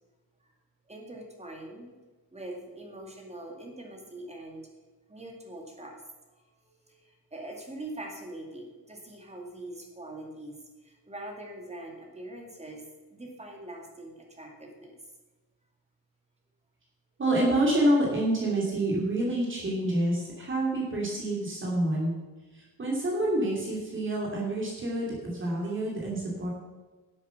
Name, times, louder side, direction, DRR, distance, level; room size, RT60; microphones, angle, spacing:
voice 1, 0.9-2.0 2.3-4.7 5.1-6.0 6.4-14.9, right 1 dB, 20° right, 1 dB, 2.3 m, -43 dB
voice 2, 17.2-22.1 22.5-26.5, right 1 dB, 35° right, -3 dB, 2.8 m, -27 dB
12.0 x 8.2 x 5.9 m, 1.2 s
cardioid pair, 145°, 36 cm